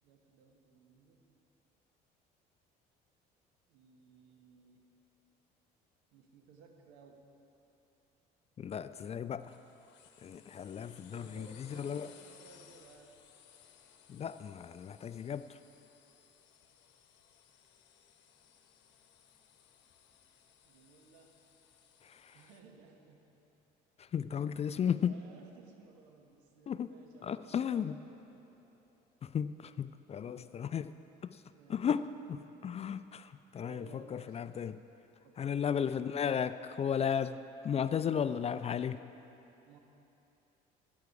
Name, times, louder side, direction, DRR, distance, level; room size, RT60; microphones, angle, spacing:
voice 1, 0.0-1.2 3.7-4.8 6.1-7.3 11.1-13.2 20.6-21.4 22.3-23.3 24.7-24.8 25.1-28.8 30.2-30.6 31.6-31.9 33.6-34.4 35.2-35.7 39.6-39.8, right 4 dB, 80° right, 3 dB, 1.3 m, -59 dB
voice 2, 8.6-9.6 10.2-12.1 14.1-15.6 22.0-22.4 24.0-25.2 26.7-26.9 27.2-27.9 29.2-30.9 31.3-31.4 31.7-32.0 32.3-34.8 35.4-39.0, left 8 dB, 30° left, 13 dB, 0.4 m, -35 dB
sound 1, 9.4-22.6, left 8 dB, 65° left, 1.0 m, -61 dB
13.0 x 9.5 x 4.8 m, 2.9 s
supercardioid pair, 70°, 20 cm